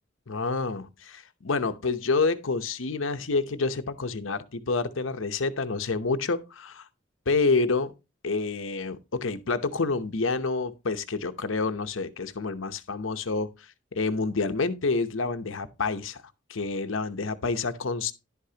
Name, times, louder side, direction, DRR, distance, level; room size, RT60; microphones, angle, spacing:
voice 1, 0.3-6.9 7.3-7.9 8.2-13.5 14.0-16.2 16.5-18.1, left 3 dB, 85° left, 0.9 m, -28 dB
11.0 x 8.2 x 2.8 m
head